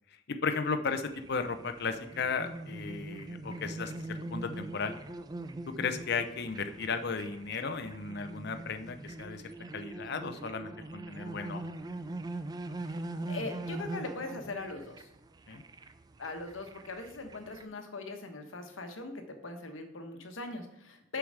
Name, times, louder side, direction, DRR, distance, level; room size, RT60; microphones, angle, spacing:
voice 1, 0.3-5.0 5.7-9.4 9.7-11.6 15.5-15.6, left 5 dB, 55° left, 8 dB, 0.6 m, -35 dB
sound 1, 1.0-17.6, right 2 dB, 20° right, 0.4 m, -42 dB
voice 2, 12.8-15.1 16.2-21.2, left 3 dB, 85° left, 5 dB, 1.1 m, -40 dB
6.9 x 4.7 x 6.5 m, 0.91 s
head